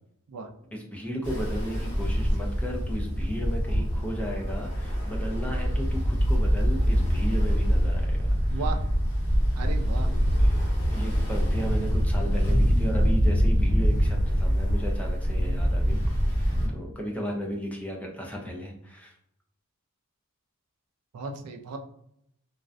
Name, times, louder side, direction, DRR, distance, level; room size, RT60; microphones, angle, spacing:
voice 1, 0.7-8.6 10.0-19.1, equal, 5° left, -1 dB, 0.3 m, -35 dB
Ocean, 1.2-16.7, equal, 40° left, 1.2 m, -24 dB
voice 2, 9.6-10.1 21.1-21.8, right 4 dB, 90° right, 4 dB, 0.4 m, -35 dB
2.4 x 2.1 x 2.4 m, 0.74 s
head